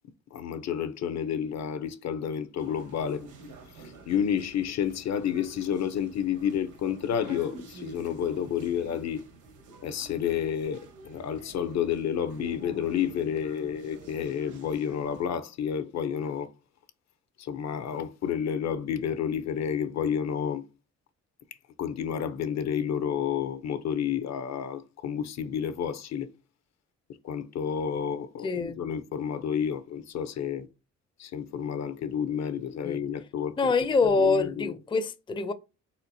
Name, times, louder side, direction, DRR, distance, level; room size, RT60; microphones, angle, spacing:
voice 1, 0.3-3.2 3.7-9.3 9.8-16.5 17.4-20.7 21.8-26.3 27.2-30.7 31.2-33.7 34.2-34.7, left 8 dB, 60° left, 0.7 m, -30 dB
sound 1, 2.6-15.3, right 3 dB, 85° right, 1.6 m, -48 dB
voice 2, 28.4-28.8 32.8-33.0 33.6-35.5, left 4 dB, 15° left, 0.5 m, -25 dB
4.3 x 4.0 x 2.7 m
cardioid pair, 90°, 30 cm